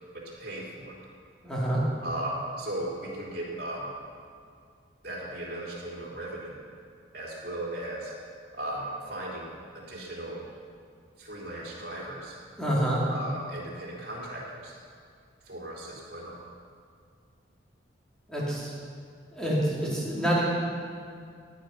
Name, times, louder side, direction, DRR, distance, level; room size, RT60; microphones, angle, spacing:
voice 1, 0.1-0.9 2.0-3.9 5.0-6.6 7.1-8.1 8.6-10.5 11.2-12.3 13.1-14.7 15.5-16.4, right 1 dB, 50° right, -5 dB, 3.8 m, -37 dB
voice 2, 1.4-1.8 12.6-13.1 18.3-18.7 19.3-20.4, right 1 dB, 5° left, -7 dB, 3.1 m, -27 dB
15.5 x 9.2 x 5.9 m, 2.3 s
head